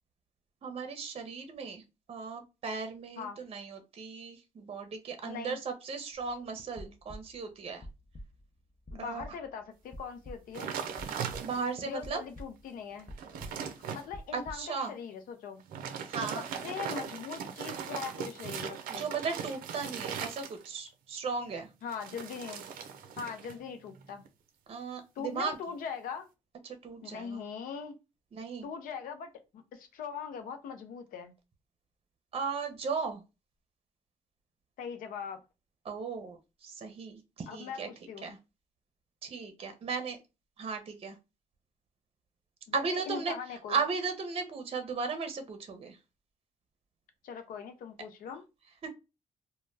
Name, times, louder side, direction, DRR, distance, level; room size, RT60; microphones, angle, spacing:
voice 1, 0.6-1.8 2.1-7.8 9.0-9.2 11.4-12.2 14.3-14.9 16.1-16.4 18.9-21.7 24.7-25.6 26.6-27.4 28.3-28.7 32.3-33.2 35.8-37.9 38.2-38.4 39.2-40.2 40.6-41.2 42.7-43.3 43.7-46.0 48.8-48.9, right 5 dB, 45° right, 0.6 m, -36 dB
voice 2, 5.2-5.6 8.9-10.7 11.8-13.1 13.9-15.6 16.3-19.1 21.8-22.6 23.2-24.2 25.2-26.3 27.0-28.0 28.6-31.3 34.8-35.4 37.5-38.3 42.7-43.8 47.2-48.4, left 6 dB, 80° left, 0.6 m, -41 dB
sound 1, 6.1-6.4 6.6-7.5 7.8-8.5 8.9-9.5 9.9-10.7 11.0-11.6 12.0-12.8 13.1-14.6, equal, 25° left, 0.5 m, -47 dB
sound 2, 10.5-11.9 12.4-12.5 12.9-14.1 15.6-20.9 21.9-23.6 23.9-24.3, right 7 dB, 85° right, 0.5 m, -39 dB
2.2 x 2.0 x 3.2 m
cardioid pair, 75°, 14 cm